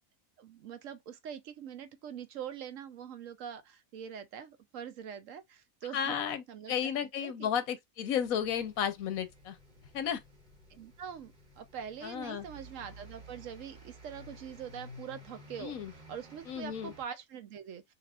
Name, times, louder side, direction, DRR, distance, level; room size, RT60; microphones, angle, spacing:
voice 1, 0.4-6.2 6.5-7.5 10.7-17.8, right 8 dB, 70° right, 1.1 m, -44 dB
voice 2, 5.9-9.6 9.9-10.2 12.0-12.5 15.6-15.9 16.5-16.9, left 8 dB, 85° left, 1.3 m, -33 dB
sound 1, 8.2-17.0, equal, 35° right, 1.4 m, -53 dB
5.9 x 2.8 x 2.4 m
omnidirectional pair, 1.4 m